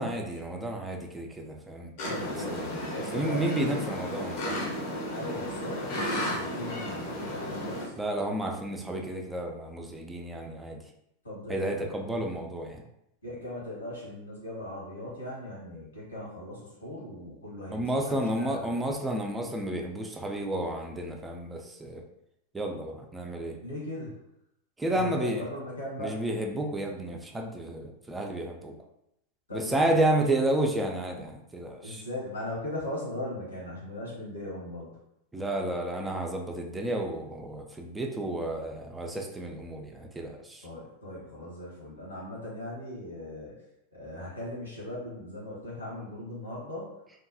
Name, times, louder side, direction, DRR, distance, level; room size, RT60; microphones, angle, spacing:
voice 1, 0.0-1.9 2.5-2.7 3.1-4.7 8.0-10.8 11.5-12.8 17.7-22.0 22.5-23.6 24.8-25.4 26.0-28.7 29.5-32.0 35.3-40.7, right 1 dB, 10° right, 2 dB, 0.4 m, -31 dB
voice 2, 2.0-3.8 5.1-7.9 11.2-12.0 13.2-19.0 23.6-24.2 24.9-26.2 29.5-30.0 31.8-34.9 40.6-43.5 43.9-46.9, left 1 dB, 75° left, -5 dB, 1.1 m, -39 dB
sound 1, 2.0-7.9, equal, 50° left, 0.7 m, -33 dB
2.7 x 2.2 x 2.5 m, 0.80 s
figure-of-eight pair, 90°, 0 cm